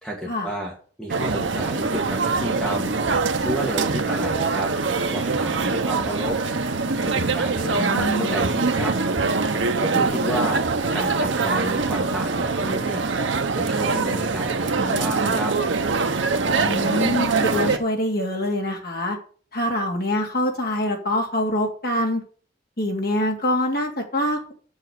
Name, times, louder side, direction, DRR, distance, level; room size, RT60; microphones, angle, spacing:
voice 1, 0.0-2.9 3.4-4.7 5.1-6.4 7.0-8.9 9.8-10.6 10.9-13.0 13.5-15.5, right 1 dB, 5° left, -3 dB, 2.2 m, -30 dB
sound 1, 1.1-17.8, right 4 dB, 75° right, 1.0 m, -23 dB
voice 2, 7.7-8.4 16.7-19.2 19.5-22.2 22.8-24.5, left 1 dB, 50° left, 1 dB, 2.8 m, -25 dB
7.3 x 6.9 x 8.2 m, 0.43 s
head